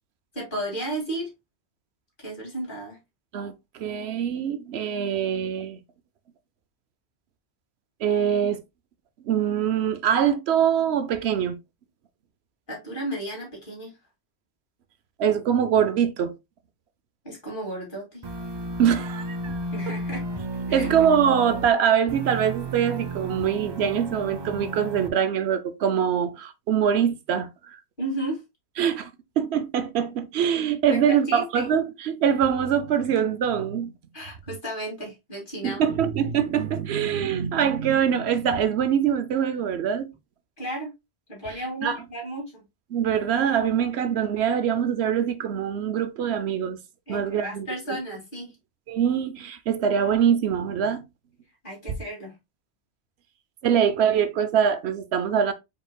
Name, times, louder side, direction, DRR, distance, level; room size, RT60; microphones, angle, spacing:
voice 1, 0.3-1.3 2.2-3.0 12.7-14.0 17.2-18.3 19.7-20.2 20.7-20.9 28.0-28.4 30.9-31.7 34.1-35.8 40.6-40.9 41.3-42.6 47.1-48.5 51.6-52.4, right 1 dB, 50° left, 2.6 m, -33 dB
voice 2, 3.3-5.8 8.0-8.6 9.3-11.6 15.2-16.3 18.8-19.6 20.7-27.5 28.8-29.1 29.4-33.9 35.6-40.1 41.8-42.0 42.9-46.8 47.1-47.7 48.9-51.0 53.6-55.5, right 8 dB, 75° right, 0.9 m, -23 dB
sound 1, 18.2-21.7 22.1-25.1, right 2 dB, 30° right, 0.5 m, -33 dB
5.1 x 4.5 x 2.2 m
omnidirectional pair, 1.1 m